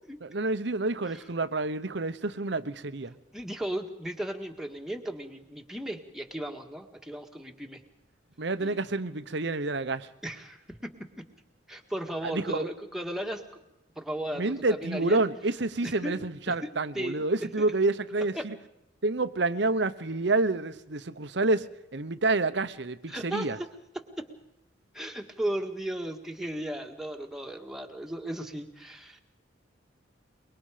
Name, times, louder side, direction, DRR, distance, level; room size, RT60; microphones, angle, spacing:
voice 1, 0.2-3.1 8.4-10.1 12.2-12.7 14.3-18.6 19.0-23.6, right 2 dB, 65° right, 1.0 m, -28 dB
voice 2, 3.3-7.8 8.6-8.8 10.2-10.9 11.7-13.4 13.9-15.2 15.8-16.1 16.5-16.6 16.9-17.2 17.6-17.7 18.3-18.4 23.1-23.5 24.2-24.3 24.9-29.2, right 1 dB, ahead, 1.7 m, -35 dB
24.0 x 22.5 x 5.1 m
head